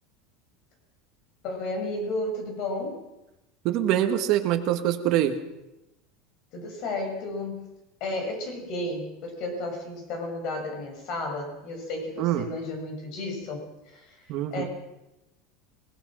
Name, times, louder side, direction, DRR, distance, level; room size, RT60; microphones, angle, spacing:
voice 1, 1.4-3.0 6.5-7.7 8.0-14.3 14.5-14.6, left 2 dB, 45° left, 4 dB, 7.0 m, -33 dB
voice 2, 3.6-5.4 12.2-12.4 14.3-14.6, right 12 dB, 45° right, 6 dB, 1.7 m, -24 dB
26.0 x 19.5 x 6.3 m, 0.96 s
supercardioid pair, 160°, 0 cm